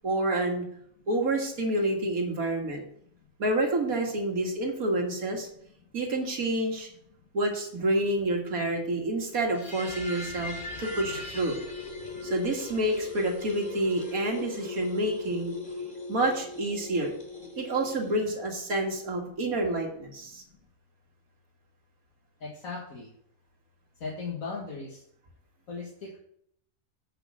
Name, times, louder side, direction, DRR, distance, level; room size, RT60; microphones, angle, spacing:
voice 1, 0.0-0.6 1.1-2.8 3.4-5.5 5.9-6.9 7.3-10.5 10.8-11.6 12.2-15.5 16.1-17.2 17.6-20.4, right 1 dB, 90° right, 1 dB, 2.2 m, -28 dB
sound 1, 9.4-18.3, left 3 dB, 35° left, 2.6 m, -39 dB
voice 2, 22.4-23.1 24.0-25.0 25.7-26.2, left 4 dB, 75° left, -3 dB, 2.0 m, -37 dB
7.9 x 6.2 x 6.2 m, 0.69 s
omnidirectional pair, 1.4 m